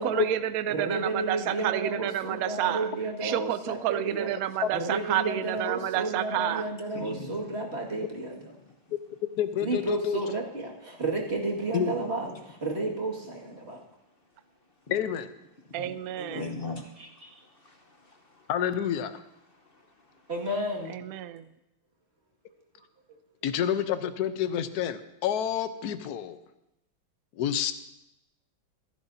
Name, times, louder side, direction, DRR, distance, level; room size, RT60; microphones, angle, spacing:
voice 1, 0.0-6.7 15.7-16.5 20.9-21.5, right 12 dB, 90° right, 13 dB, 0.7 m, -30 dB
voice 2, 0.7-4.3 4.7-8.4 9.6-13.8 16.2-16.6 17.0-17.3 20.3-21.0, right 2 dB, 30° right, -2 dB, 2.2 m, -32 dB
voice 3, 6.9-7.4 8.0-8.1 11.8-11.9 15.7-15.9 16.3-18.5 19.7-19.8, left 3 dB, 40° left, 4 dB, 0.9 m, -40 dB
voice 4, 9.4-10.2 11.7-11.9 14.9-15.3 18.5-19.2 23.4-26.4 27.4-27.7, left 9 dB, 60° left, 10 dB, 1.1 m, -28 dB
27.0 x 11.0 x 2.7 m, 0.90 s
omnidirectional pair, 2.2 m